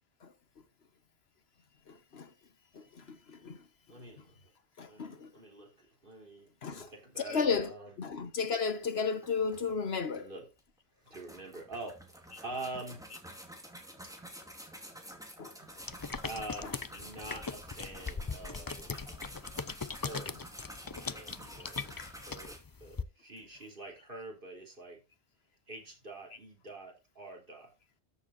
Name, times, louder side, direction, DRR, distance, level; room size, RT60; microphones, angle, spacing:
voice 1, 1.9-2.3 2.7-3.6 3.9-4.0 4.8-5.3 6.6-6.9 7.3-7.7 8.0-10.3 15.4-15.5 16.6-16.7 21.1-21.2 22.0-22.1, left 5 dB, 65° left, 1.3 m, -34 dB
voice 2, 3.9-4.4 4.8-8.0 10.1-10.5 11.0-13.1 16.2-19.1 19.8-20.4 21.0-21.9 22.3-25.0 25.7-27.7, right 2 dB, 50° right, 3.8 m, -46 dB
sound 1, 8.8-8.9 9.2-10.2 10.6-10.7 11.1-22.6, equal, 5° right, 2.6 m, -50 dB
sound 2, 15.8-23.0, left 4 dB, 30° left, 0.4 m, -40 dB
13.5 x 7.2 x 2.6 m
omnidirectional pair, 1.2 m